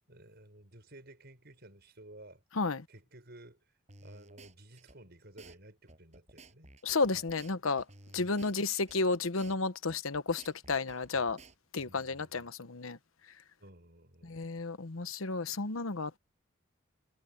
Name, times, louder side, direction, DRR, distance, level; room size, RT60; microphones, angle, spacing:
voice 1, 0.1-2.4 2.9-6.7 11.8-12.5 13.6-14.4, right 1 dB, 55° right, 6.5 m, -55 dB
sound 1, 3.9-5.0 5.4-5.6 5.9-9.0 9.4-9.6 9.9-11.9, right 2 dB, 35° right, 6.2 m, -55 dB
voice 2, 6.8-7.8 8.1-11.4 11.7-13.0 14.2-16.2, left 3 dB, 85° left, 1.1 m, -32 dB
head